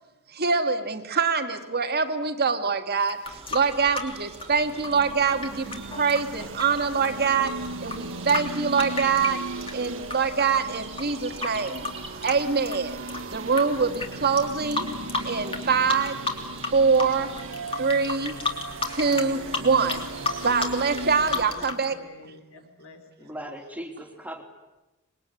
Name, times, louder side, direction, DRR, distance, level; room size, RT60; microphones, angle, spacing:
voice 1, 0.3-9.4 9.7-11.9 12.2-13.0 13.3-14.9 15.2-16.3 16.7-17.5 17.8-18.4 18.9-20.1 20.4-22.0, right 5 dB, 50° right, 7 dB, 1.8 m, -24 dB
sound 1, 3.0-10.2 10.5-13.6 13.9-14.1 14.4-15.6 15.9-16.7 16.9-21.8, left 3 dB, 25° left, 3.2 m, -31 dB
sound 2, 3.2-21.7, right 3 dB, 30° right, 2.0 m, -45 dB
sound 3, 4.6-21.4, right 2 dB, 65° right, 1.6 m, -37 dB
voice 2, 21.2-23.4, left 2 dB, 65° left, 6 dB, 4.3 m, -49 dB
voice 3, 23.2-24.4, equal, 5° right, 4 dB, 3.0 m, -38 dB
26.0 x 21.5 x 9.8 m, 1.0 s
head